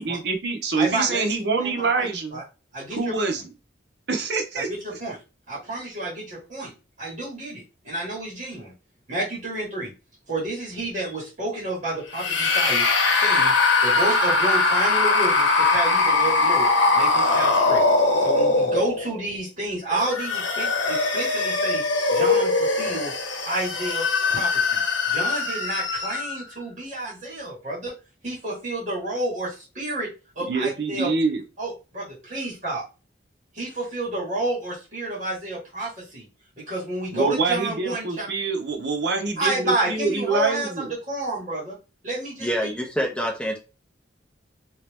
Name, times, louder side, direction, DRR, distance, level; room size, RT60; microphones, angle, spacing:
voice 1, 0.0-2.4 2.9-3.5 4.1-4.7 30.4-31.4 37.1-40.9, right 4 dB, 60° right, 0.8 m, -25 dB
voice 2, 0.7-1.7 1.9-2.1 2.3-2.4 2.7-3.1 4.7-5.2 5.5-6.7 7.0-8.7 9.1-9.9 10.3-13.5 13.8-17.8 18.2-21.8 22.1-23.2 23.4-24.8 25.1-28.0 28.2-31.1 31.6-32.8 33.5-36.3 36.6-38.3 39.4-41.8 42.0-42.5, right 2 dB, 40° right, 1.6 m, -30 dB
sound 1, 12.1-19.2 19.9-26.4, left 3 dB, 80° left, 0.9 m, -21 dB
voice 3, 42.4-43.6, equal, 5° left, 0.8 m, -26 dB
3.0 x 2.8 x 3.4 m
head